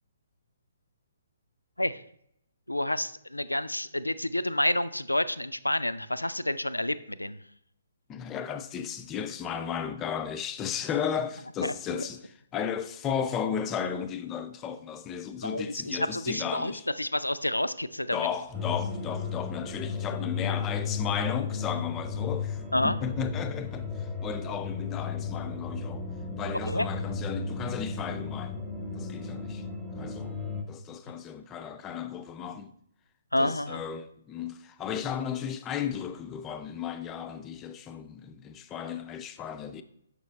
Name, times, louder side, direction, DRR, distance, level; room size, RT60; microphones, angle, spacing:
voice 1, 2.7-7.4 11.6-12.0 15.4-18.3 22.7-23.0 26.7-26.9 33.3-33.8, left 1 dB, 85° left, 0.4 m, -29 dB
voice 2, 8.1-16.9 18.1-26.0 26.3-28.7 28.9-29.7 30.0-30.4 30.7-32.7 33.4-39.8, left 8 dB, 15° left, 0.4 m, -34 dB
sound 1, 18.5-30.6, left 5 dB, ahead, 0.8 m, -34 dB
6.6 x 4.8 x 3.2 m
figure-of-eight pair, 130°, 0 cm